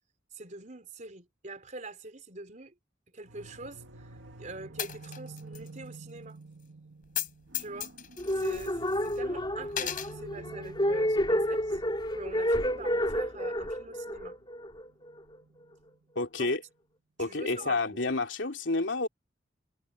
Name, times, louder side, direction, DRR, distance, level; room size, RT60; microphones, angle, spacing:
voice 1, 0.3-2.7 3.1-6.4 7.6-7.9 8.4-11.8 12.1-14.4 16.4-16.5 17.2-18.0, right 2 dB, 40° right, 4.0 m, -44 dB
sound 1, 3.2-16.0, right 3 dB, 80° right, 1.9 m, -51 dB
Coin (dropping), 4.8-5.7 5.9-6.0 7.0-7.3 7.5-9.2 9.7-10.1, left 10 dB, 45° left, 4.6 m, -36 dB
sound 2, 8.2-15.4, equal, 25° left, 3.1 m, -30 dB
voice 2, 16.1-16.6 17.2-19.1, left 3 dB, 75° left, 3.0 m, -29 dB
head